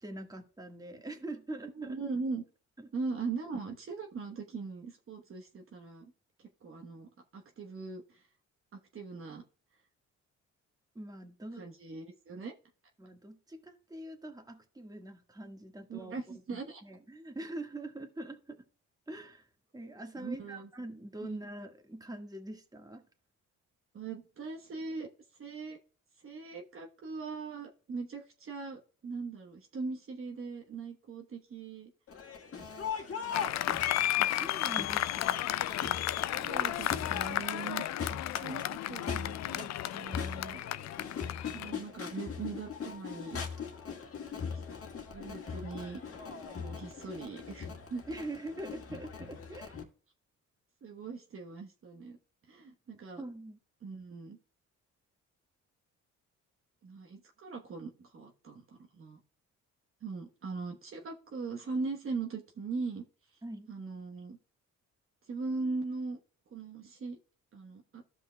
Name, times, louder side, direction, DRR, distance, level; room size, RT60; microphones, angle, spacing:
voice 1, 0.0-2.0 2.8-2.9 10.9-11.7 13.0-16.1 16.5-18.7 19.1-19.5 19.7-23.0 34.2-35.5 48.1-49.8 53.2-53.6 63.4-63.7, right 1 dB, 10° right, 5 dB, 1.5 m, -44 dB
voice 2, 1.8-2.4 2.9-6.1 6.6-8.2 8.9-9.4 11.6-12.5 15.9-16.8 20.2-20.7 21.2-21.4 23.9-25.1 25.4-25.8 26.2-31.9 33.0-33.5 36.3-40.6 41.5-43.4 44.5-44.6 45.1-46.0 46.6-48.0 50.8-52.2 52.5-53.2 53.8-54.4 56.8-59.2 60.0-63.0 63.7-64.4 65.3-66.2 66.5-67.2 67.5-68.0, right 4 dB, 45° right, 2 dB, 1.1 m, -40 dB
Crowd, 32.1-49.8, left 6 dB, 50° left, 1.7 m, -41 dB
Applause, 33.3-41.7, left 13 dB, 65° left, 0.4 m, -33 dB
15.0 x 5.4 x 2.2 m, 0.41 s
cardioid pair, 90°, 30 cm